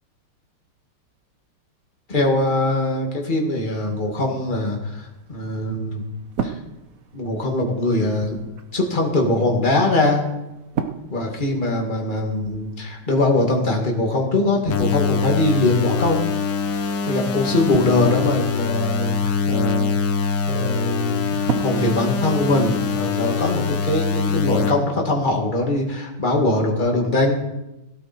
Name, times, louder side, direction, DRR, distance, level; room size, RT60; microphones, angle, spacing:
voice 1, 2.1-6.0 6.4-6.6 7.1-8.4 8.7-10.2 11.1-16.3 17.1-19.9 20.5-27.4, left 2 dB, 20° left, 0 dB, 2.1 m, -22 dB
sound 1, 5.0-23.0, right 6 dB, 55° right, 1.0 m, -37 dB
sound 2, 14.7-24.7, left 5 dB, 85° left, 2.2 m, -23 dB
16.5 x 11.5 x 4.5 m, 0.97 s
omnidirectional pair, 2.4 m